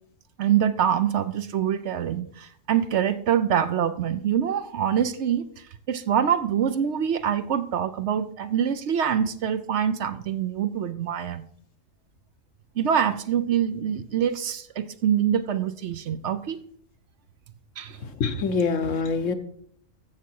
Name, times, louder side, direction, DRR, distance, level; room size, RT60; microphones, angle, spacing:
voice 1, 0.4-11.4 12.8-16.6 17.8-18.0, right 9 dB, 65° right, 0.9 m, -25 dB
voice 2, 18.2-19.3, left 5 dB, 70° left, 1.3 m, -24 dB
14.0 x 7.2 x 4.6 m
omnidirectional pair, 1.4 m